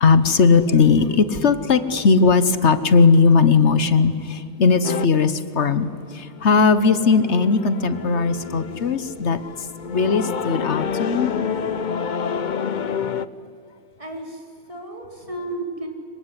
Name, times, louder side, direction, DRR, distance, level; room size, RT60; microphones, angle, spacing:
voice 1, 0.0-11.3, left 4 dB, 70° left, 13 dB, 1.3 m, -18 dB
sound 1, 4.8-5.1 6.2-13.3, left 7 dB, 45° left, 0.8 m, -28 dB
voice 2, 14.0-15.9, right 2 dB, 30° right, 1 dB, 4.4 m, -33 dB
26.0 x 23.5 x 9.8 m, 2.5 s
omnidirectional pair, 1.2 m